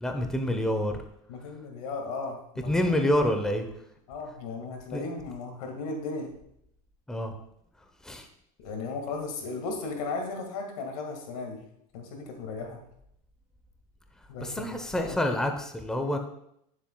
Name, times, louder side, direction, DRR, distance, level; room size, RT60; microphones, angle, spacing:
voice 1, 0.0-0.9 2.7-3.7 4.9-5.0 7.1-7.3 8.0-8.3 14.4-16.2, left 1 dB, 5° left, 5 dB, 0.8 m, -27 dB
voice 2, 1.3-3.0 4.1-6.3 8.6-11.6 11.9-12.8 14.3-15.2, left 3 dB, 80° left, 3 dB, 1.9 m, -36 dB
9.8 x 7.3 x 2.3 m, 0.74 s
supercardioid pair, 115°, 18 cm